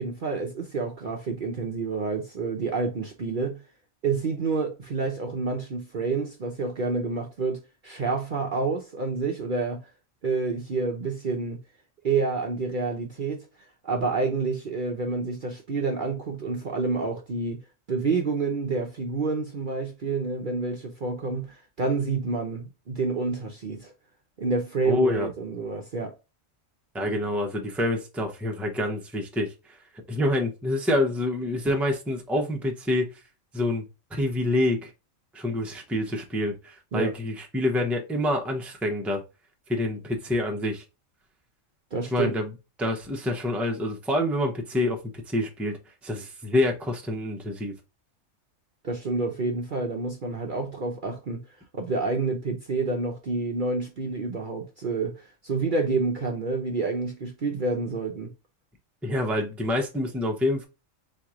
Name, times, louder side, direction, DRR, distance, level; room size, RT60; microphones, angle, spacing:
voice 1, 0.0-3.6 4.0-9.9 10.2-11.6 12.0-13.5 13.8-17.6 17.9-23.9 24.4-26.1 36.9-37.1 41.9-42.3 48.8-51.4 51.7-58.3, right 4 dB, 45° right, 0.8 m, -28 dB
voice 2, 24.9-25.3 26.9-29.5 30.1-33.1 33.5-33.8 34.1-34.9 35.3-39.2 39.7-40.8 42.1-42.5 42.8-47.7 59.0-60.6, left 1 dB, ahead, 0.7 m, -27 dB
4.2 x 3.1 x 3.6 m
omnidirectional pair, 1.4 m